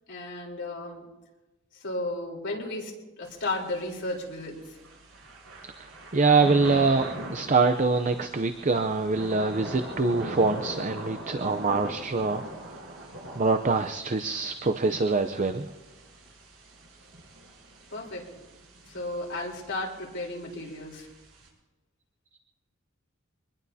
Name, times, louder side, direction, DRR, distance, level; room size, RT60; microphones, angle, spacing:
voice 1, 0.1-1.1 1.7-4.8 17.9-18.3 18.9-21.1, left 2 dB, 55° left, -1 dB, 3.9 m, -34 dB
Thunder / Rain, 3.3-21.5, right 1 dB, 85° right, 6.4 m, -42 dB
voice 2, 5.8-7.1 7.3-12.4 12.7-12.8 13.3-15.7, right 3 dB, 35° right, 8 dB, 0.6 m, -24 dB
25.0 x 20.5 x 2.8 m, 1.1 s
head